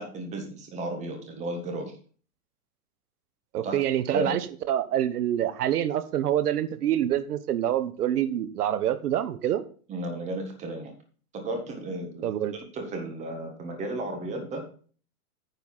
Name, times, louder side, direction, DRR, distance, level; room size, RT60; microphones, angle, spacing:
voice 1, 0.0-1.9 3.6-3.8 4.1-4.4 9.9-10.9 11.3-12.3 12.5-14.6, right 1 dB, 15° right, 4 dB, 1.6 m, -34 dB
voice 2, 3.5-4.4 4.7-9.6 12.2-12.5, right 11 dB, 85° right, 13 dB, 1.2 m, -26 dB
9.6 x 4.2 x 7.3 m, 0.43 s
supercardioid pair, 170°, 44 cm